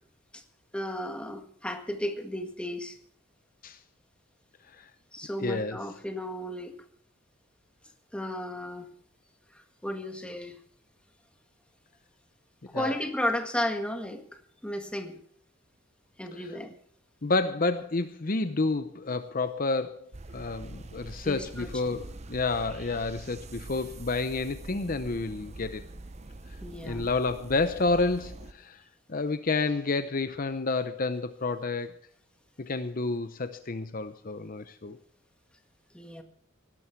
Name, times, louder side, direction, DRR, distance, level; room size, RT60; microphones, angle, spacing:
voice 1, 0.7-3.0 5.1-6.7 8.1-8.9 9.5-10.6 12.7-15.2 16.2-16.7 21.2-21.7 26.6-27.1 35.9-36.2, left 1 dB, 5° left, 5 dB, 1.7 m, -34 dB
voice 2, 5.4-5.8 12.7-12.9 17.2-20.0 20.3-25.9 26.8-28.8 29.1-31.9 32.6-35.0, left 3 dB, 45° left, 11 dB, 0.7 m, -29 dB
sound 1, 20.1-28.5, right 2 dB, 35° right, 0.7 m, -44 dB
17.5 x 12.5 x 4.6 m, 0.63 s
head